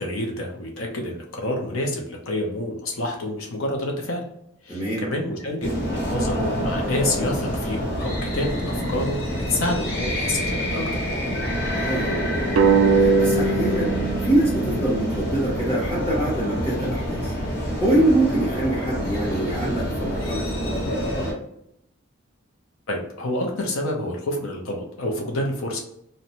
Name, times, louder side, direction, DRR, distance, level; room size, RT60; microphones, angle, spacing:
voice 1, 0.0-4.2 4.6-5.7 6.1-11.0 22.9-25.8, left 1 dB, 85° left, 1 dB, 0.6 m, -28 dB
voice 2, 4.7-5.1 11.7-12.2 12.9-17.3 17.8-21.2, right 1 dB, 15° left, -7 dB, 0.7 m, -24 dB
sound 1, 5.6-21.3, equal, 50° left, 1.1 m, -27 dB
sound 2, 12.6-15.8, right 4 dB, 75° right, 0.3 m, -21 dB
2.6 x 2.1 x 2.9 m, 0.75 s
head